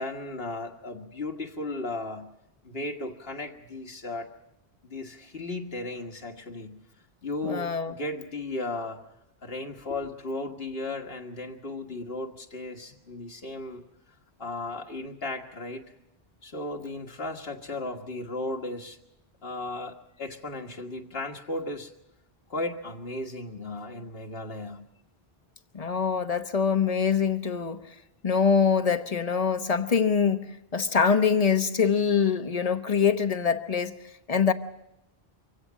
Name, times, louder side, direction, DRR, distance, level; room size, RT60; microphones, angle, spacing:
voice 1, 0.0-2.3 2.6-4.3 4.8-6.8 7.2-9.0 9.4-13.8 14.4-15.8 16.4-19.0 19.4-21.9 22.5-24.8, left 2 dB, 65° left, 1.8 m, -35 dB
voice 2, 7.4-7.9 25.7-27.8 28.2-33.9 34.3-34.5, left 6 dB, 40° left, 1.0 m, -24 dB
24.5 x 16.5 x 7.3 m
omnidirectional pair, 1.1 m